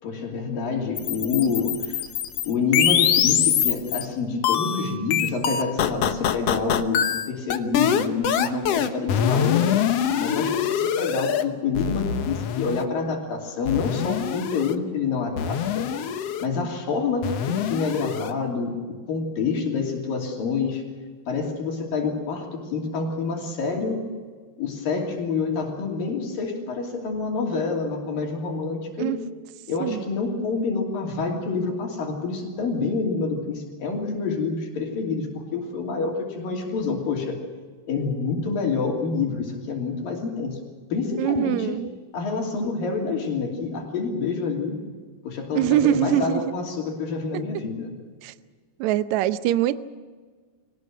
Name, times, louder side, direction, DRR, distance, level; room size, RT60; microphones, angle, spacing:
voice 1, 0.0-2.0 2.5-9.9 10.2-15.9 16.4-18.7 19.1-20.8 21.3-24.0 24.6-29.1 29.7-37.4 37.9-40.5 40.9-41.8 42.1-44.8 45.2-47.9, left 4 dB, 65° left, 0 dB, 4.6 m, -27 dB
sound 1, 1.0-4.0 4.4-11.4 11.7-12.8 13.7-14.7 15.4-16.5 17.2-18.3, left 9 dB, 85° left, 1.4 m, -24 dB
voice 2, 41.2-41.9 45.5-46.4 47.3-47.4 48.2-48.3 48.8-49.8, right 12 dB, 90° right, 13 dB, 1.6 m, -23 dB
23.5 x 18.5 x 7.7 m, 1.5 s
omnidirectional pair, 4.4 m